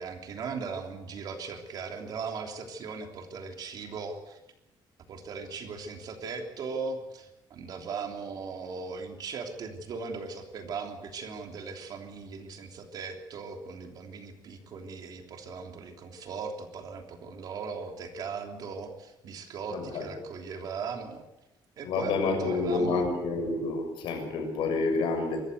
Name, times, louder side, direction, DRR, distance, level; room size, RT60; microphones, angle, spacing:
voice 1, 0.0-4.4 5.1-21.2 21.8-23.1, right 5 dB, 50° right, 4 dB, 3.2 m, -38 dB
voice 2, 19.7-20.1 21.8-25.4, left 3 dB, 80° left, 4 dB, 6.8 m, -29 dB
25.0 x 14.5 x 8.1 m, 0.92 s
cardioid pair, 175°, 9 cm